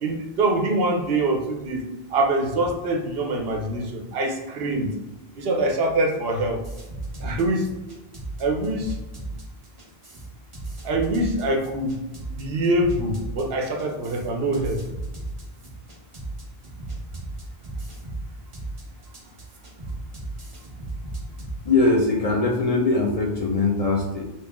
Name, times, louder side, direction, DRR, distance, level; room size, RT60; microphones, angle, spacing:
voice 1, 0.0-4.9 5.4-6.6 7.2-7.7 8.4-8.9 10.8-12.0 12.3-14.8, right 2 dB, 75° right, 2 dB, 0.9 m, -24 dB
sound 1, 6.6-21.6, right 2 dB, 35° right, 0.7 m, -35 dB
voice 2, 21.6-24.2, left 3 dB, 50° left, 0 dB, 0.5 m, -21 dB
3.0 x 2.8 x 3.5 m, 1.1 s
omnidirectional pair, 1.0 m